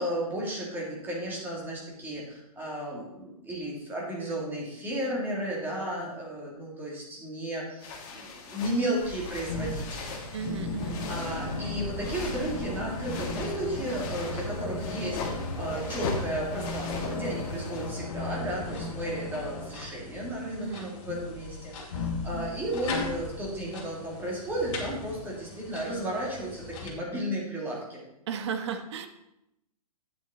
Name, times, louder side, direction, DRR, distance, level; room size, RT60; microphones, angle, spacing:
voice 1, 0.0-10.2 11.1-28.0, right 1 dB, 10° right, -3 dB, 2.1 m, -34 dB
sound 1, 7.8-18.0, left 4 dB, 30° left, 1.8 m, -40 dB
sound 2, 9.0-26.9, left 2 dB, 50° left, 2.7 m, -36 dB
voice 2, 10.3-11.0 20.6-20.9 28.3-29.1, right 7 dB, 45° right, 8 dB, 1.0 m, -34 dB
8.8 x 7.4 x 4.1 m, 0.86 s
hypercardioid pair, 155°, 19 cm